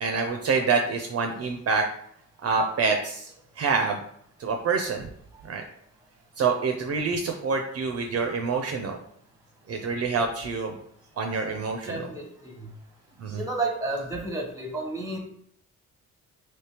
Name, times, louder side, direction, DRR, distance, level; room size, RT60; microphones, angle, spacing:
voice 1, 0.0-1.8 2.4-3.3 3.6-4.0 4.4-5.0 5.5-5.6 6.4-9.0 9.7-10.8 11.2-12.0 13.2-13.4, right 4 dB, 50° right, 4 dB, 0.5 m, -26 dB
voice 2, 11.2-11.6 11.9-12.7 13.3-15.2, right 2 dB, 10° right, 2 dB, 0.8 m, -32 dB
3.4 x 3.0 x 2.9 m, 0.67 s
cardioid pair, 100°, 31 cm